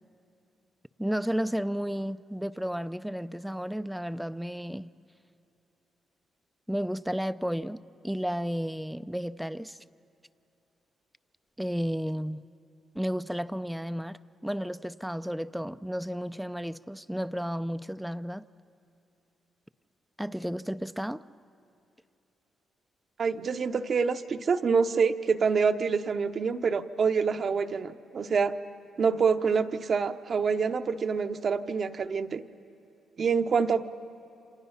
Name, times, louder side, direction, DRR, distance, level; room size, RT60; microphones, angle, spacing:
voice 1, 1.0-4.9 6.7-9.8 11.6-12.4 12.9-14.2 14.4-18.5 20.2-21.2, equal, 5° right, 0.5 m, -32 dB
voice 2, 23.2-28.5 29.0-32.4 33.2-33.8, right 5 dB, 55° right, 0.9 m, -26 dB
29.0 x 26.0 x 5.7 m
cardioid pair, 75°, 0 cm